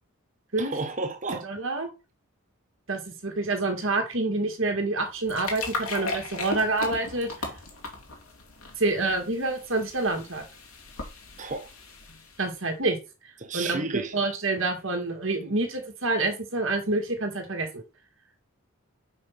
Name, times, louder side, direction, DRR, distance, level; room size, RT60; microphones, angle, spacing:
voice 1, 0.6-1.4 11.4-11.7 13.4-14.1, right 3 dB, 35° right, 0.9 m, -32 dB
voice 2, 1.4-1.9 2.9-7.3 8.8-10.4 12.4-13.0 13.5-17.8, right 2 dB, 60° right, 2.0 m, -27 dB
sound 1, 5.0-12.6, left 3 dB, 75° left, 2.5 m, -37 dB
5.5 x 5.4 x 5.9 m
head